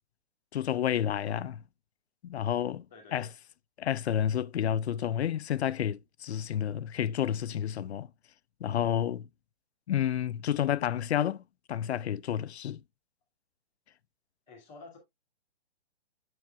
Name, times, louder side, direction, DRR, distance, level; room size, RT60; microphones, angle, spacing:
voice 1, 0.5-1.6 2.2-2.9 3.1-3.3 3.8-8.1 8.6-9.3 9.9-11.4 11.7-12.8, left 10 dB, 90° left, 0.5 m, -30 dB
voice 2, 2.9-3.3 14.5-15.0, left 3 dB, ahead, 0.4 m, -50 dB
7.6 x 7.1 x 2.2 m
hypercardioid pair, 165°, 32 cm